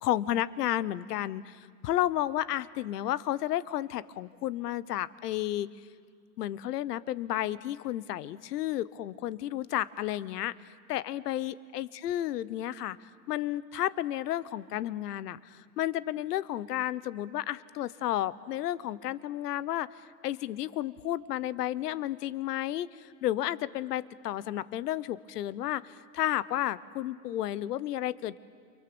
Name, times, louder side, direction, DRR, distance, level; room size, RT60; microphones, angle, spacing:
voice 1, 0.0-5.7 6.4-10.5 10.9-19.9 20.2-28.4, left 13 dB, 70° left, 18 dB, 1.0 m, -32 dB
29.5 x 24.5 x 7.0 m, 2.1 s
hypercardioid pair, 145°, 50 cm